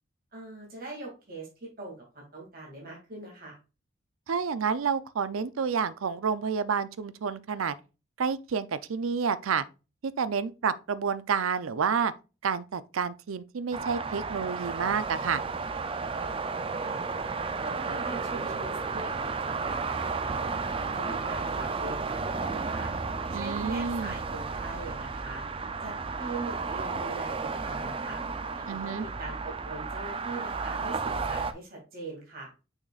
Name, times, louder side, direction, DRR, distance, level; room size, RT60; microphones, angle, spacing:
voice 1, 0.3-3.6 16.8-17.0 17.6-20.4 20.7-22.9 23.3-25.5 25.8-28.2 28.5-32.5, right 2 dB, 45° right, 2.4 m, -42 dB
voice 2, 4.3-7.8 8.2-9.6 10.0-12.1 12.4-15.4 23.3-24.1 28.7-29.1, right 6 dB, 90° right, 0.5 m, -29 dB
sound 1, 13.7-31.5, right 4 dB, 25° right, 0.4 m, -33 dB
6.5 x 6.0 x 2.4 m
head